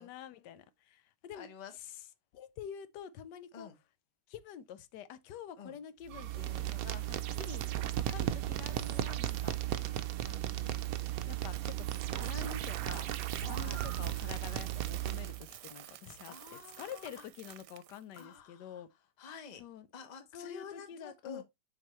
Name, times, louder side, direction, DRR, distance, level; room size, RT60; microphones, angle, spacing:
voice 1, 0.0-1.5 2.3-3.7 4.3-7.6 8.0-10.0 10.2-10.8 11.3-11.9 12.1-16.3 16.8-18.9 19.6-19.9 20.3-21.4, left 9 dB, 85° left, 1.3 m, -47 dB
voice 2, 1.3-1.8 3.5-3.8 5.6-5.8 7.6-7.7 8.2-8.4 9.7-9.9 13.6-13.9 15.7-16.0 16.3-17.3 18.2-18.8 19.2-19.6 19.9-21.4, left 6 dB, 35° left, 0.7 m, -50 dB
sound 1, 6.1-15.5, right 13 dB, 70° right, 0.9 m, -35 dB
Coin (dropping), 10.8-18.2, right 13 dB, 85° right, 1.2 m, -51 dB
7.7 x 4.6 x 3.0 m
omnidirectional pair, 1.8 m